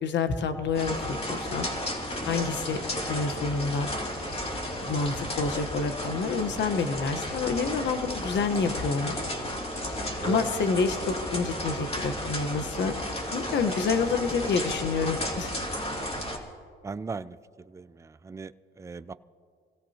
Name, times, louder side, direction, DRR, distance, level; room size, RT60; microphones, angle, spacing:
voice 1, 0.0-1.7 2.3-2.8 3.1-3.9 4.8-9.2 10.2-12.9 13.3-15.5, left 4 dB, 65° left, 8 dB, 1.2 m, -28 dB
sound 1, 0.7-16.4, equal, 30° left, 2.6 m, -33 dB
voice 2, 10.2-10.5 16.8-17.4 17.7-18.5 18.8-19.1, right 4 dB, 15° right, 13 dB, 0.4 m, -37 dB
26.5 x 17.0 x 2.9 m, 2.1 s
cardioid pair, 90°, 20 cm